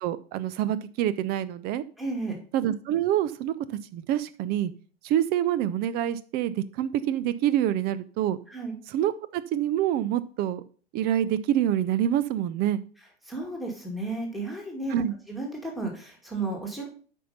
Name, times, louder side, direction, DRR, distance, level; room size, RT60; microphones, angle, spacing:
voice 1, 0.0-1.8 2.5-4.7 5.0-8.4 8.9-10.6 10.9-12.8 14.9-15.1, right 11 dB, 30° right, 15 dB, 0.6 m, -26 dB
voice 2, 2.0-2.4 8.5-8.8 13.3-16.9, right 3 dB, ahead, 0 dB, 2.3 m, -33 dB
8.5 x 5.4 x 5.6 m, 0.41 s
figure-of-eight pair, 95°, 31 cm